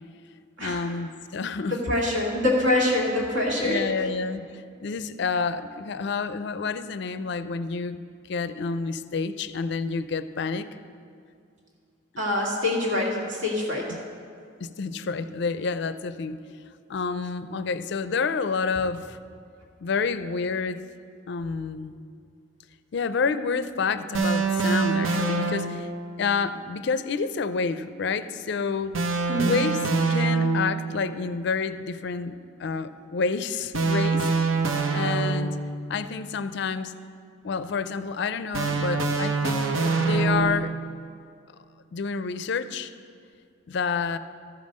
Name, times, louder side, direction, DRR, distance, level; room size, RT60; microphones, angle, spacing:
voice 1, 0.6-1.8 3.6-8.0 8.3-10.7 12.1-12.2 13.9-14.0 14.6-16.4 16.9-19.2 19.8-20.8 21.3-22.0 22.9-25.9 26.2-29.0 29.4-34.3 34.9-35.6 35.9-36.9 37.4-39.7 40.0-40.7 41.9-42.9 43.7-44.2, left 5 dB, 60° left, 13 dB, 0.4 m, -29 dB
voice 2, 1.7-3.9 12.2-13.9 29.3-29.5, left 1 dB, 65° right, -2 dB, 2.0 m, -25 dB
sound 1, 24.1-26.0 28.9-30.8 33.7-35.7 38.5-40.7, right 4 dB, 85° right, 0.8 m, -24 dB
13.0 x 5.3 x 6.5 m, 2.3 s
head